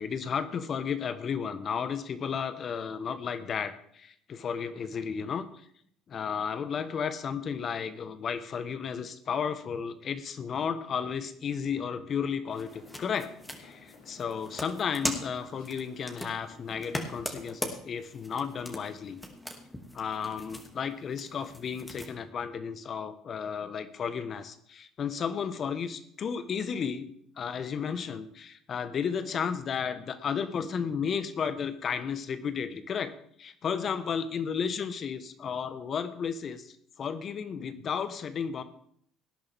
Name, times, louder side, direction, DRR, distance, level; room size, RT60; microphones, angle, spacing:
voice 1, 0.0-5.7 6.1-13.3 13.6-19.2 19.9-27.1 27.4-38.6, left 7 dB, 45° left, 11 dB, 1.4 m, -33 dB
sound 1, 12.4-17.5, left 4 dB, 75° left, 3.8 m, -55 dB
sound 2, 12.5-22.1, left 1 dB, 10° left, 2.6 m, -40 dB
18.5 x 10.5 x 3.7 m, 0.65 s
hypercardioid pair, 60°, 0 cm